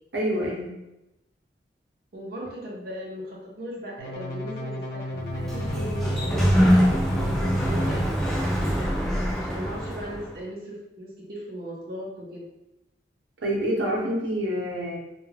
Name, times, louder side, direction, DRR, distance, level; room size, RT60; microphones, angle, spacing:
voice 1, 0.1-0.7 13.4-15.0, equal, 90° right, -2 dB, 0.7 m, -27 dB
voice 2, 2.1-8.9 9.3-12.4, equal, 55° right, -5 dB, 0.6 m, -38 dB
sound 1, 4.0-8.1 8.8-9.3, left 1 dB, 60° left, 0.6 m, -34 dB
Sliding door, 5.2-10.3, equal, ahead, 0.4 m, -24 dB
2.3 x 2.2 x 3.2 m, 0.92 s
head